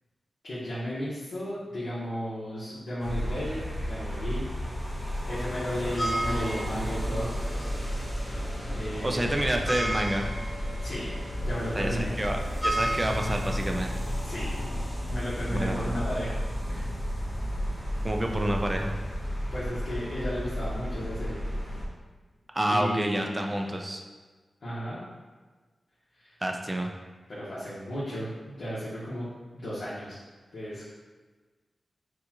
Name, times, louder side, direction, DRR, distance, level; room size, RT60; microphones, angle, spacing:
voice 1, 0.4-4.4 5.3-7.3 8.7-9.6 10.8-11.1 11.4-12.1 14.2-14.6 15.1-16.4 16.7-16.9 19.5-21.4 22.7-23.7 24.6-25.0 26.1-26.3 27.3-29.3 29.5-30.2 30.5-30.8, equal, 65° left, -11 dB, 1.2 m, -34 dB
sound 1, 3.0-21.8, equal, 10° left, 1.2 m, -32 dB
voice 2, 9.0-10.4 11.7-13.9 15.5-15.9 18.0-18.9 22.5-24.0 26.4-26.9, right 1 dB, 20° right, 3 dB, 0.4 m, -28 dB
6.4 x 2.4 x 2.9 m, 1.3 s
wide cardioid pair, 115°, 0 cm